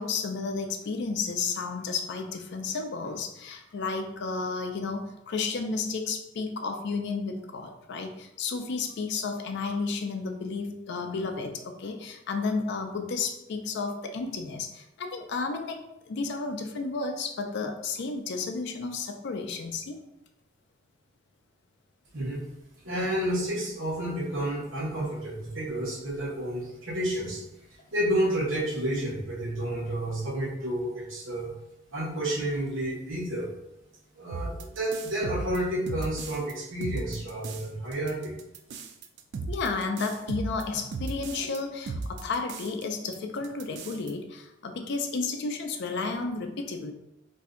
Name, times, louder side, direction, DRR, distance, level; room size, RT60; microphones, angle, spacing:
voice 1, 0.0-15.8 16.1-20.0 39.5-46.9, left 4 dB, 60° left, 5 dB, 0.4 m, -32 dB
voice 2, 22.8-27.4 27.9-31.5 31.9-33.5 34.2-38.4, right 1 dB, 80° right, -3 dB, 0.9 m, -30 dB
sound 1, 34.3-36.5 36.8-37.7 37.9-41.6 41.9-42.8 43.1-43.2 43.4-44.1, right 3 dB, 60° right, 0.3 m, -36 dB
2.6 x 2.1 x 3.6 m, 0.86 s
head